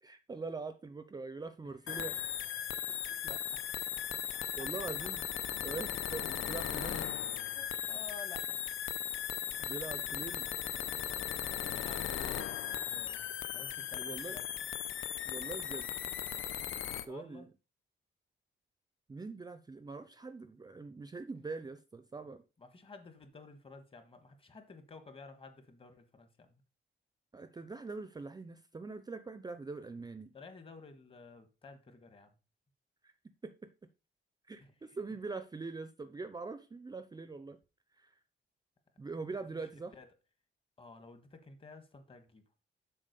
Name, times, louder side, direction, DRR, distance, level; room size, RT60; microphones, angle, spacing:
voice 1, 0.0-2.2 4.6-5.2 5.6-7.1 9.6-10.5 14.0-14.4 15.2-15.9 17.1-17.5 19.1-22.4 27.3-30.3 33.0-33.1 33.4-33.7 34.5-37.6 38.0-38.1 39.0-39.9, right 4 dB, 20° right, 0.5 m, -43 dB
sound 1, 1.9-17.1, left 10 dB, 80° left, 0.7 m, -37 dB
voice 2, 3.1-3.6 4.4-4.6 7.5-8.6 11.6-13.2 13.5-14.5 17.1-17.5 22.6-26.6 30.3-32.3 34.6-34.7 39.5-39.6 39.9-40.1 40.8-42.4, left 4 dB, 25° left, 1.4 m, -53 dB
7.4 x 4.4 x 6.7 m
wide cardioid pair, 150°, 20 cm